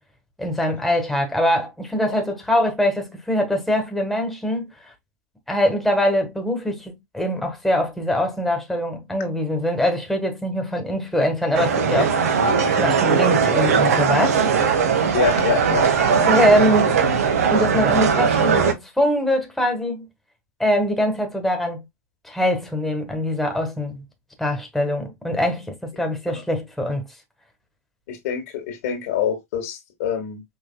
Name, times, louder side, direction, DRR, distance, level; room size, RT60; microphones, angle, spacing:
voice 1, 0.4-4.7 5.5-12.1 12.7-14.5 16.2-17.0 17.5-20.1 20.6-21.8 22.2-24.0 24.4-27.1, equal, ahead, 1.4 m, -23 dB
sound 1, 11.5-18.7, right 6 dB, 80° right, 1.5 m, -19 dB
voice 2, 15.1-15.9 26.3-26.4 28.1-30.4, left 9 dB, 65° left, 1.7 m, -25 dB
5.4 x 3.3 x 2.2 m
hypercardioid pair, 120°, 8 cm